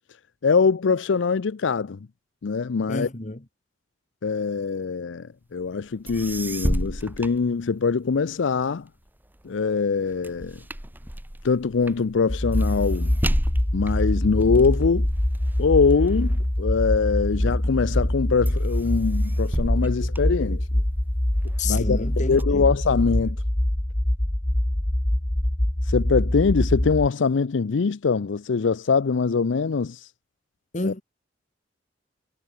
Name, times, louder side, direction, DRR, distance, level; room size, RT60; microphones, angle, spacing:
voice 1, 0.4-2.0 2.4-3.1 4.2-8.9 9.4-10.6 11.4-13.2 13.7-15.1 15.6-20.6 21.6-22.0 22.3-23.4 25.9-30.1 30.8-30.9, left 5 dB, 85° left, 0.5 m, -23 dB
voice 2, 2.9-3.4 21.6-22.6 30.7-31.0, left 3 dB, 40° left, 1.5 m, -29 dB
sound 1, 5.8-5.9 6.1-8.2 8.6-17.3 17.8-18.2 18.5-20.9 21.4-22.4, equal, 10° right, 1.4 m, -32 dB
sound 2, 12.3-27.1, left 1 dB, 20° left, 1.0 m, -24 dB
head